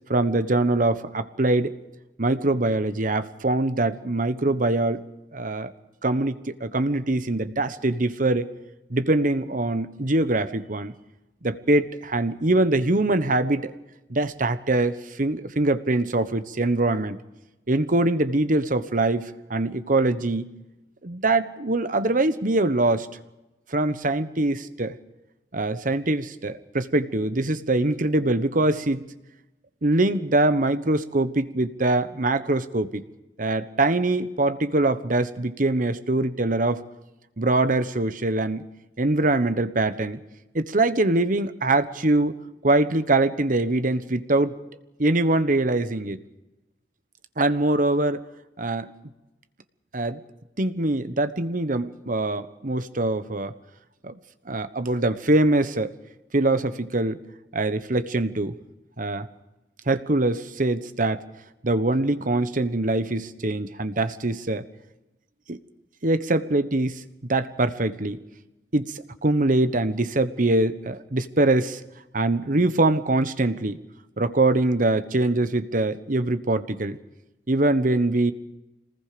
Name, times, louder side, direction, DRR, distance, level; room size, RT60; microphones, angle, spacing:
voice 1, 0.1-1.7 2.2-5.0 5.3-5.7 6.0-8.5 8.9-10.9 11.4-13.7 14.1-17.2 17.7-20.5 21.0-23.1 23.7-25.0 25.5-29.1 29.8-33.0 33.4-36.8 37.4-38.7 39.0-40.2 40.5-42.3 42.6-44.5 45.0-46.2 47.4-48.2 48.6-48.9 49.9-50.2 50.6-53.5 54.0-54.2 54.5-55.9 56.3-57.2 57.5-58.5 59.0-59.3 59.9-61.2 61.6-64.6 65.5-65.6 66.0-67.0 67.3-68.2 68.7-71.8 72.1-73.8 74.2-77.0 77.5-78.3, right 2 dB, 50° right, 11 dB, 1.2 m, -23 dB
26.5 x 20.0 x 5.2 m, 0.99 s
head